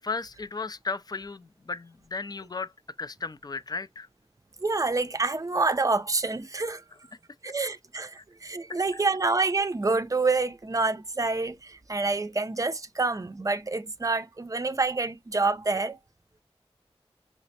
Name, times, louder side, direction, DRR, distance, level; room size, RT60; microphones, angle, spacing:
voice 1, 0.0-2.7 3.0-4.1 8.2-8.3 8.9-9.0, left 4 dB, 40° left, 0.4 m, -35 dB
voice 2, 4.6-6.8 7.4-16.0, right 3 dB, 30° right, 0.5 m, -27 dB
5.8 x 2.0 x 2.7 m
wide cardioid pair, 50°, 11 cm